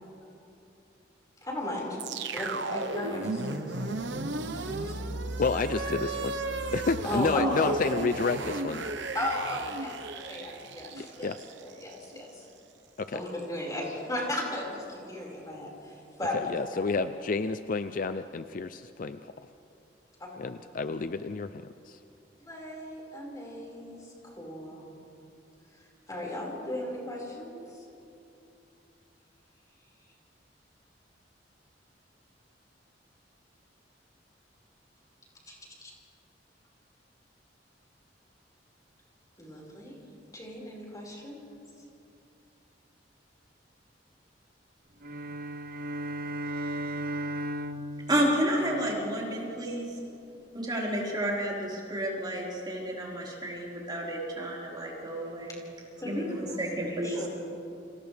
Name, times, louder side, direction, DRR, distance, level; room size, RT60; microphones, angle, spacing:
voice 1, 1.4-2.0 2.3-3.9 4.6-5.2 7.0-7.9 9.1-10.0 10.3-11.3 11.6-12.5 13.1-16.8 20.2-20.3 22.4-25.0 26.1-27.8 35.5-35.6 35.8-35.9 39.4-39.9 40.3-41.5 56.0-56.3 57.0-57.3, left 1 dB, 20° left, -3 dB, 5.3 m, -36 dB
sound 1, 2.0-12.2, right 2 dB, 80° right, 1.1 m, -34 dB
voice 2, 5.4-6.3 6.7-8.8 11.2-11.4 13.0-13.2 16.3-19.2 20.4-22.0, left 4 dB, 50° left, 11 dB, 0.5 m, -30 dB
sound 2, 45.0-49.5, right 1 dB, 55° right, 0.9 m, -36 dB
voice 3, 48.1-49.9 50.5-55.6 56.0-57.3, right 1 dB, 25° right, -5 dB, 4.7 m, -31 dB
29.5 x 27.0 x 3.5 m, 2.7 s
head